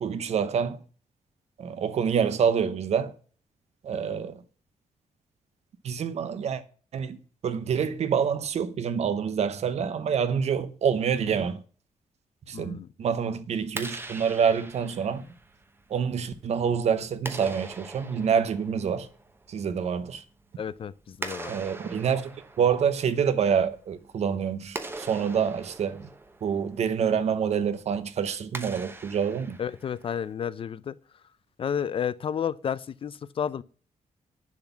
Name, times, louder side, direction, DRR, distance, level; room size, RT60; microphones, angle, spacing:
voice 1, 0.0-0.8 1.6-3.1 3.8-4.4 5.8-6.6 6.9-7.2 7.4-11.6 12.5-15.2 15.9-19.1 19.5-20.2 21.5-22.3 22.6-26.1 26.4-29.6, right 7 dB, 55° right, 0.8 m, -27 dB
voice 2, 12.5-12.9 20.6-21.5 29.6-31.0 31.6-33.6, left 8 dB, 45° left, 0.4 m, -31 dB
Clapping, 13.6-30.3, right 2 dB, 15° right, 0.9 m, -43 dB
10.5 x 4.0 x 7.0 m
wide cardioid pair, 165°, 13 cm